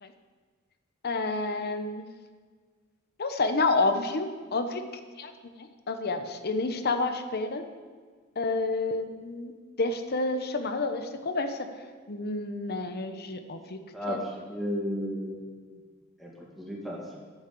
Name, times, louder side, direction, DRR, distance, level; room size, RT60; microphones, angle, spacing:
voice 1, 1.0-2.1 3.2-4.8 5.2-5.3 5.6-7.6 8.4-9.5 9.8-11.7 12.1-13.8 14.1-14.2, left 3 dB, 50° left, 8 dB, 0.8 m, -29 dB
voice 2, 14.5-15.8 16.2-17.2, equal, ahead, -4 dB, 2.3 m, -34 dB
8.9 x 7.2 x 7.0 m, 1.5 s
head